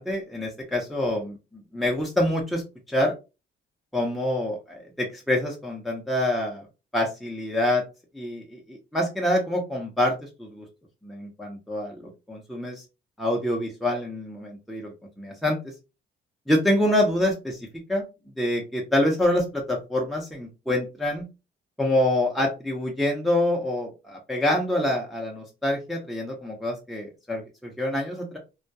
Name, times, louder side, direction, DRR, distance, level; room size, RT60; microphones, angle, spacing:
voice 1, 0.0-2.6 2.9-3.1 3.9-6.7 6.9-7.8 8.1-10.6 11.0-12.8 13.2-15.6 16.5-17.6 17.9-18.1 18.4-21.3 21.8-28.4, left 1 dB, ahead, -1 dB, 0.6 m, -26 dB
2.3 x 2.1 x 2.6 m, 0.28 s
cardioid pair, 90°, 20 cm